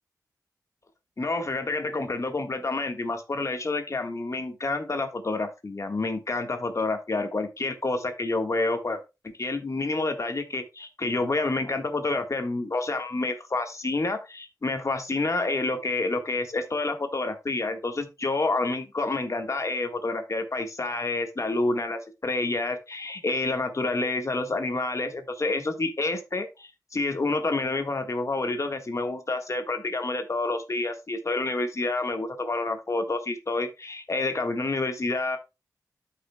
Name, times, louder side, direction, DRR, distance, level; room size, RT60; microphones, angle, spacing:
voice 1, 1.2-9.0 9.4-35.4, left 2 dB, 50° left, 6 dB, 1.6 m, -28 dB
13.0 x 5.7 x 2.3 m, 0.26 s
cardioid pair, 50°, 7 cm